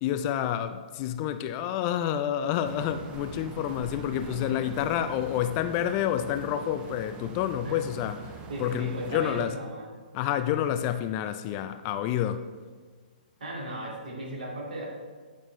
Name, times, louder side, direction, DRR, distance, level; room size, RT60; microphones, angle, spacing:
voice 1, 0.0-8.3 8.6-9.5 10.1-12.4, left 10 dB, 30° left, 0.3 m, -29 dB
sound 1, 2.6-9.4, right 4 dB, 20° right, 0.5 m, -43 dB
voice 2, 3.6-4.9 7.6-7.8 8.5-9.9 13.4-14.9, right 1 dB, 65° right, 2.2 m, -37 dB
9.5 x 5.3 x 3.1 m
figure-of-eight pair, 125°, 5 cm